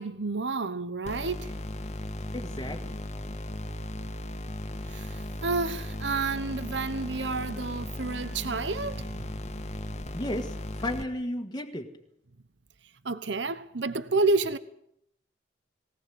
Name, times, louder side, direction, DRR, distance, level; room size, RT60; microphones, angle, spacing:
voice 1, 0.0-1.5 4.9-9.2 13.0-14.6, right 3 dB, 80° right, 1.0 m, -30 dB
sound 1, 1.0-11.0, left 1 dB, 40° left, 1.6 m, -36 dB
voice 2, 2.3-3.2 10.1-11.9, left 1 dB, 25° left, 1.7 m, -34 dB
20.0 x 18.5 x 7.8 m
head